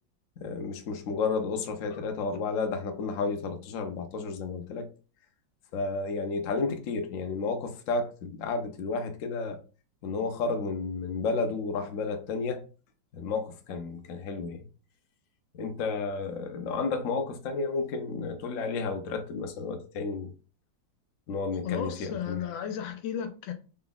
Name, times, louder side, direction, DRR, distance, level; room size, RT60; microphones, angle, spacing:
voice 1, 0.4-4.9 5.7-9.6 10.0-12.6 13.1-14.6 15.5-20.3 21.3-22.4, left 4 dB, 60° left, 0.9 m, -32 dB
voice 2, 21.6-23.5, left 9 dB, 85° left, 1.4 m, -34 dB
3.9 x 2.3 x 3.9 m
omnidirectional pair, 2.0 m